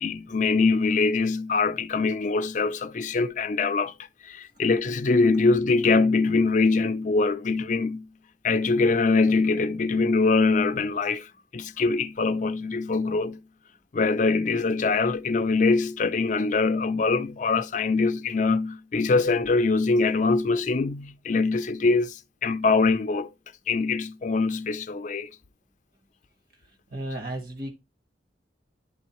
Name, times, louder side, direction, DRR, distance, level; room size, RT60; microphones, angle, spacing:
voice 1, 0.0-3.9 4.2-8.1 8.4-11.3 11.5-13.4 13.9-23.3 23.7-25.3, left 3 dB, 45° left, 0.5 m, -23 dB
voice 2, 26.9-27.7, right 1 dB, 55° right, 1.5 m, -33 dB
11.0 x 3.8 x 3.0 m
head